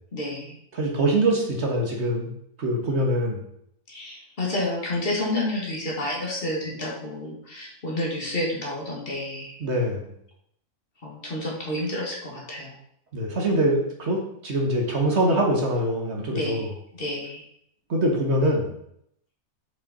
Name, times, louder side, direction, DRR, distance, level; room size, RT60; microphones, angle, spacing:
voice 1, 0.1-0.6 3.9-9.6 11.0-12.7 16.3-16.7 17.0-17.4, left 1 dB, 40° left, -2 dB, 2.1 m, -30 dB
voice 2, 0.7-2.3 2.6-3.4 9.6-10.0 13.1-16.7 17.9-18.7, right 1 dB, 50° right, 0 dB, 1.6 m, -24 dB
6.8 x 5.3 x 4.2 m, 0.73 s
omnidirectional pair, 1.5 m